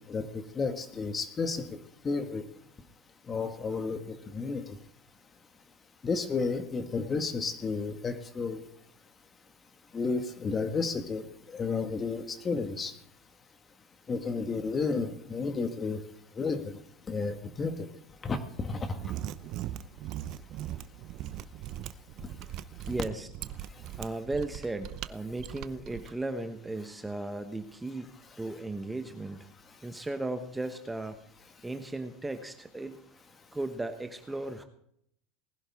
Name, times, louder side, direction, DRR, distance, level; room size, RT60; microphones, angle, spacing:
voice 1, 0.1-1.6 2.0-2.4 3.3-4.8 6.0-8.6 9.9-12.9 14.1-16.0 16.3-16.8 17.1-17.9 18.2-19.0, left 4 dB, 25° left, 8 dB, 1.7 m, -32 dB
Mechanisms, 18.9-26.1, right 13 dB, 55° right, 0.7 m, -39 dB
voice 2, 22.9-23.3 24.0-28.1 28.4-29.5 29.8-31.2 31.6-33.1 33.5-34.6, right 2 dB, 10° right, 7 dB, 1.1 m, -36 dB
19.5 x 11.0 x 3.6 m, 0.70 s
supercardioid pair, 105°, 0 cm